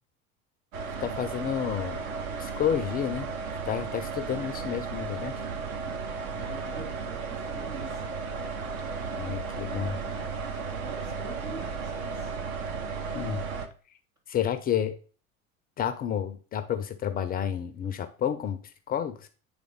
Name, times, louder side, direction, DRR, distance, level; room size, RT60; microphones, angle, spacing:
sound 1, 0.7-13.7, right 5 dB, 65° right, 0.9 m, -34 dB
voice 1, 1.0-2.1 2.4-3.3 3.7-5.3 9.2-9.9 13.1-13.4 14.3-14.9 15.8-18.6 18.9-19.3, left 9 dB, 20° left, 10 dB, 0.4 m, -30 dB
voice 2, 4.3-4.7 6.3-8.1 9.7-10.3 10.6-12.4, right 2 dB, 90° right, -6 dB, 3.4 m, -45 dB
8.8 x 3.5 x 3.7 m, 0.38 s
figure-of-eight pair, 70°, 45 cm